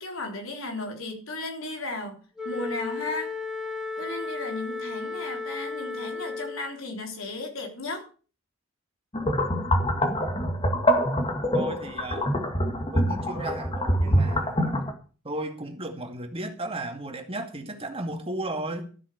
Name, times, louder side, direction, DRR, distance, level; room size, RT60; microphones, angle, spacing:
voice 1, 0.0-2.2 2.4-3.3 4.0-8.0, left 2 dB, 85° left, 3.7 m, -35 dB
Wind instrument woodwind instrument, 2.4-6.7, left 4 dB, 5° right, 2.6 m, -34 dB
sound 1, 9.1-14.9, equal, 25° left, 2.1 m, -25 dB
voice 2, 11.5-12.4 12.9-14.8 15.2-18.9, right 1 dB, 30° right, 2.3 m, -35 dB
13.5 x 7.7 x 6.6 m
head